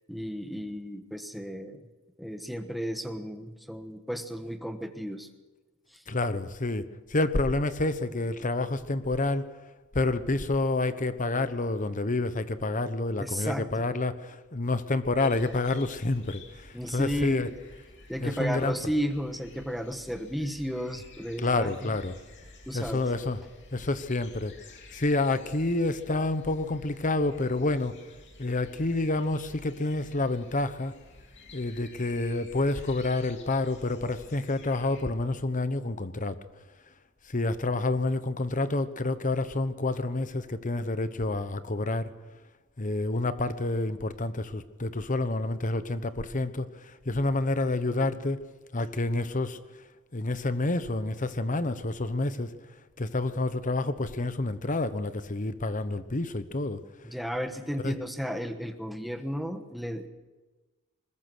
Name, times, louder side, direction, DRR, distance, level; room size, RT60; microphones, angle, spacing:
voice 1, 0.1-1.9 2.2-5.3 5.9-6.0 13.2-13.7 16.7-17.5 18.1-21.9 22.7-23.1 57.0-60.1, equal, ahead, 7 dB, 1.4 m, -33 dB
voice 2, 6.1-9.5 9.9-17.5 18.2-18.8 21.4-22.1 22.7-23.4 23.7-24.5 24.9-28.0 28.4-30.9 31.5-36.4 37.3-42.1 42.8-48.4 48.7-49.6 50.1-52.5 53.0-56.8 57.8-57.9, left 2 dB, 40° left, 12 dB, 1.0 m, -28 dB
sound 1, 15.2-35.0, left 3 dB, 55° left, 2.7 m, -51 dB
21.0 x 21.0 x 6.3 m, 1.3 s
head